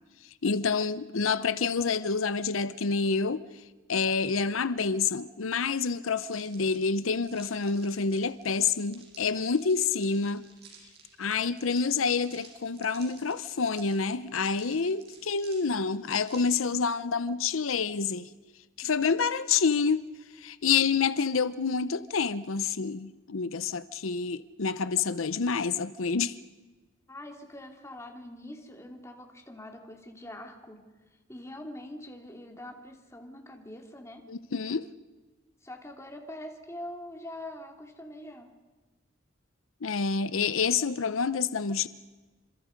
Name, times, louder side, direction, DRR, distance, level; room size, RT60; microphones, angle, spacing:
voice 1, 0.4-3.4 3.9-10.4 11.2-18.3 18.8-20.1 20.4-26.4 34.3-34.9 39.8-41.9, left 5 dB, 85° left, 0.8 m, -28 dB
sound 1, 6.3-16.8, right 6 dB, 50° right, 6.9 m, -54 dB
voice 2, 27.1-30.8 31.3-34.3 35.6-38.5, left 1 dB, 15° left, 3.0 m, -44 dB
29.0 x 27.0 x 5.3 m
head